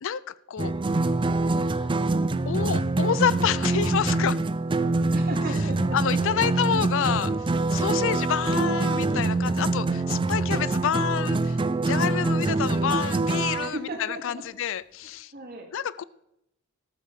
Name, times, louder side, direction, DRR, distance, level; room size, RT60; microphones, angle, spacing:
voice 1, 0.0-0.7 2.5-4.4 5.9-15.3 15.7-16.0, left 8 dB, 65° left, 19 dB, 0.4 m, -28 dB
sound 1, 0.6-13.7, right 2 dB, 25° right, 0.4 m, -25 dB
voice 2, 5.0-6.2 6.7-6.8 7.9-8.1 13.6-14.4 15.3-15.7, right 1 dB, 45° right, 2 dB, 2.4 m, -36 dB
14.0 x 7.2 x 6.7 m, 0.84 s
head